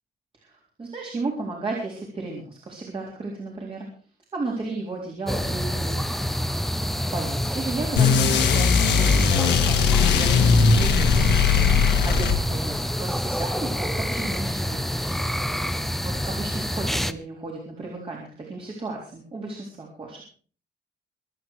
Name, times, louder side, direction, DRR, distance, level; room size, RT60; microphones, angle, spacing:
voice 1, 0.3-3.9 4.3-6.3 7.1-11.3 12.0-15.2 16.0-20.2, right 3 dB, 30° right, -2 dB, 3.8 m, -34 dB
sound 1, 5.3-17.1, equal, ahead, 0.6 m, -27 dB
sound 2, 8.0-12.8, left 6 dB, 75° left, 2.4 m, -19 dB
24.5 x 8.8 x 4.7 m, 0.42 s
cardioid pair, 165°, 19 cm